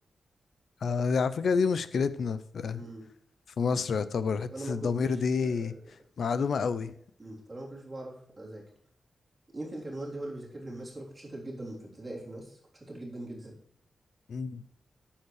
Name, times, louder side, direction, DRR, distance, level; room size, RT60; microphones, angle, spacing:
voice 1, 0.8-2.8 3.6-5.7 6.2-6.9 14.3-14.6, left 5 dB, 65° left, 0.6 m, -28 dB
voice 2, 2.8-3.1 4.5-5.9 7.2-8.6 9.5-13.6, right 1 dB, 20° right, 3.6 m, -41 dB
9.4 x 7.3 x 4.8 m
wide cardioid pair, 135°, 0 cm